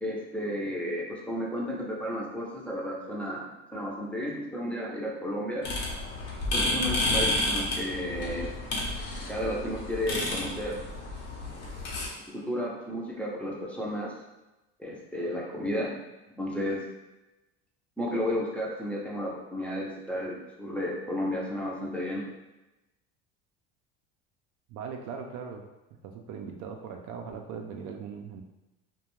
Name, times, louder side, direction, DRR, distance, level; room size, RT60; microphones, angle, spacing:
voice 1, 0.0-3.5 3.7-5.7 6.5-8.5 9.3-10.8 12.3-14.1 14.8-16.0 16.4-16.8 18.0-22.3, equal, 5° left, -5 dB, 0.5 m, -32 dB
sound 1, 5.6-12.1, left 1 dB, 80° left, 0.9 m, -31 dB
voice 2, 24.7-25.7 26.0-28.4, right 6 dB, 60° right, 3 dB, 0.4 m, -39 dB
2.3 x 2.2 x 3.0 m, 1.0 s
supercardioid pair, 100°, 33 cm